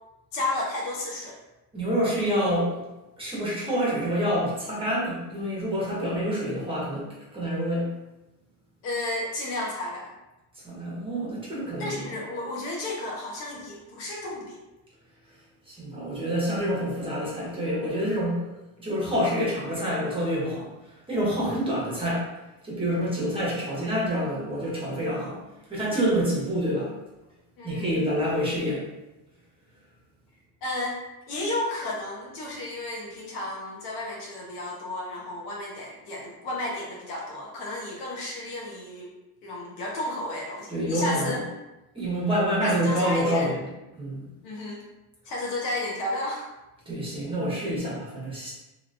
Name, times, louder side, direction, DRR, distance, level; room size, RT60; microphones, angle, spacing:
voice 1, 0.3-1.4 8.8-10.1 11.8-14.6 27.6-27.9 30.6-31.0 31.3-39.1 39.4-41.5 42.6-43.5 44.4-44.8 45.2-46.5, left 1 dB, 70° left, -2 dB, 1.2 m, -32 dB
voice 2, 1.7-2.8 3.2-7.9 10.6-12.1 15.7-18.4 18.8-20.6 21.1-22.3 22.6-25.4 25.7-26.9 27.6-28.8 40.7-41.4 41.9-43.6 43.9-44.2 46.9-48.5, equal, 10° right, -7 dB, 1.2 m, -27 dB
3.1 x 2.9 x 2.6 m, 0.99 s
supercardioid pair, 125°, 44 cm